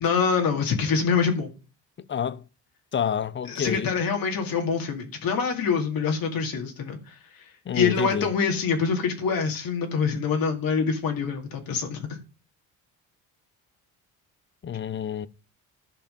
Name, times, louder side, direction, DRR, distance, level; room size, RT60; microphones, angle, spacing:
voice 1, 0.0-1.5 3.5-7.1 7.7-12.1, left 5 dB, 65° left, 2.2 m, -25 dB
voice 2, 2.0-2.4 2.9-3.9 7.7-8.3 14.6-15.3, left 8 dB, 30° left, 0.6 m, -28 dB
12.0 x 5.0 x 5.1 m
cardioid pair, 90°, 37 cm